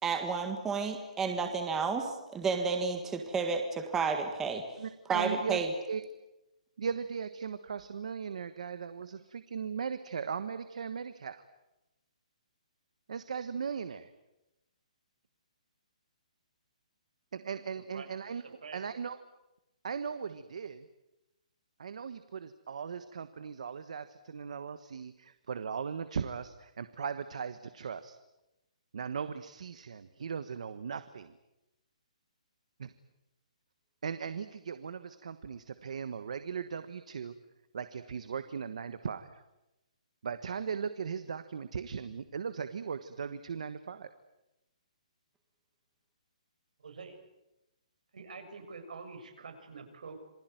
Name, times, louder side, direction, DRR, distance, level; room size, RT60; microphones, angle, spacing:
voice 1, 0.0-4.6 5.1-5.7, right 5 dB, 10° right, 5 dB, 1.7 m, -31 dB
voice 2, 4.8-6.0 6.8-11.4 13.1-14.1 17.3-19.2 19.8-20.9 21.8-28.1 28.9-31.4 32.8-32.9 34.0-37.3 37.7-39.4 40.2-44.1, right 6 dB, 60° right, 11 dB, 1.4 m, -38 dB
voice 3, 18.4-18.8 46.8-47.2 48.1-50.1, right 4 dB, 75° right, 6 dB, 6.5 m, -46 dB
27.5 x 21.0 x 9.3 m, 0.94 s
hypercardioid pair, 175°, 4 cm